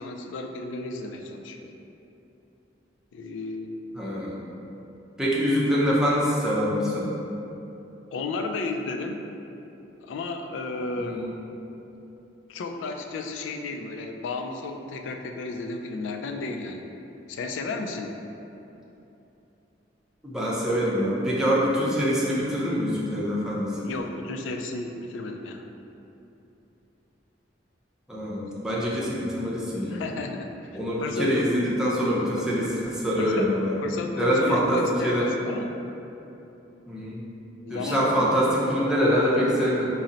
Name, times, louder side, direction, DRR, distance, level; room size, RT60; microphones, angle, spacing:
voice 1, 0.0-1.7 3.1-3.7 8.1-9.2 10.0-11.3 12.5-16.8 17.3-18.1 23.8-25.7 29.9-30.5 31.0-31.5 33.2-33.5 33.8-35.8 37.6-38.4, left 3 dB, 85° left, 5 dB, 0.3 m, -33 dB
voice 2, 3.9-4.4 5.2-7.1 11.0-11.3 20.2-23.9 28.1-30.0 30.7-33.8 34.2-35.3 36.9-37.3 37.7-39.8, equal, 5° right, -7 dB, 0.6 m, -25 dB
4.0 x 2.0 x 3.8 m, 2.9 s
head